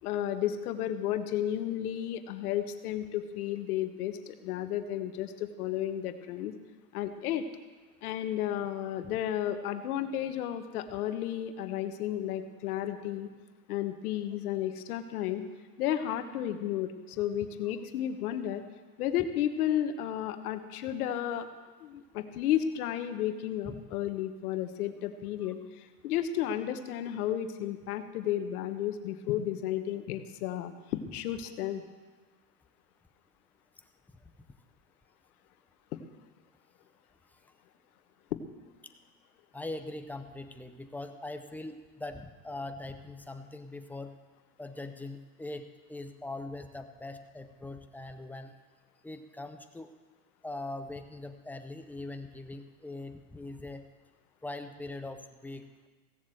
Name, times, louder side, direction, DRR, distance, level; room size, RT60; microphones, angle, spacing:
voice 1, 0.0-6.5 6.9-7.4 8.0-13.3 13.7-15.4 15.8-18.6 19.0-21.5 21.8-31.8 38.3-38.4, left 11 dB, 75° left, 9 dB, 1.3 m, -33 dB
voice 2, 39.5-44.1 44.6-48.5 49.0-49.9 50.4-53.8 54.4-55.9, left 2 dB, 5° left, 7 dB, 0.6 m, -41 dB
16.5 x 7.4 x 7.8 m, 1.3 s
supercardioid pair, 130°, 45 cm